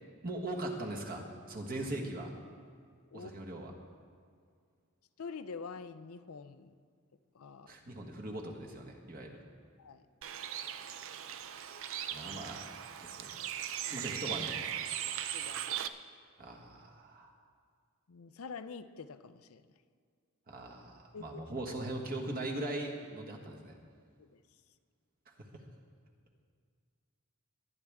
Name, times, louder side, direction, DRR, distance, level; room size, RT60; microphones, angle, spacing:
voice 1, 0.2-2.3 3.1-3.7 7.7-9.4 10.7-10.8 12.1-12.7 13.0-13.3 13.9-14.6 16.4-17.3 20.5-23.7, right 1 dB, 40° right, 0 dB, 1.5 m, -40 dB
voice 2, 5.2-6.7 7.3-7.7 9.8-10.0 13.8-14.1 15.3-15.9 18.1-19.6 21.1-21.4 24.2-24.4, left 5 dB, 70° left, 11 dB, 0.5 m, -46 dB
Bird, 10.2-15.9, right 10 dB, 65° right, 0.5 m, -39 dB
21.5 x 10.0 x 3.6 m, 2.1 s
head